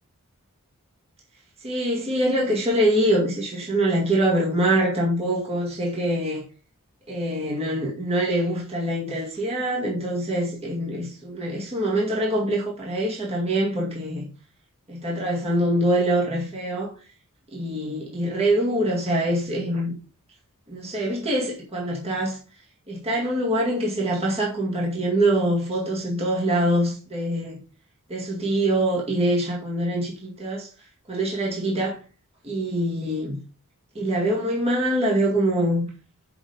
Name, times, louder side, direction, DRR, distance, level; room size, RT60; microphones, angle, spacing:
voice 1, 1.6-6.4 7.1-14.3 14.9-16.9 17.5-20.0 20.7-22.4 22.9-27.6 28.1-30.7 31.1-32.0 32.4-33.4 34.0-35.9, right 1 dB, 30° right, 2.0 m, -24 dB
7.1 x 5.1 x 5.2 m
head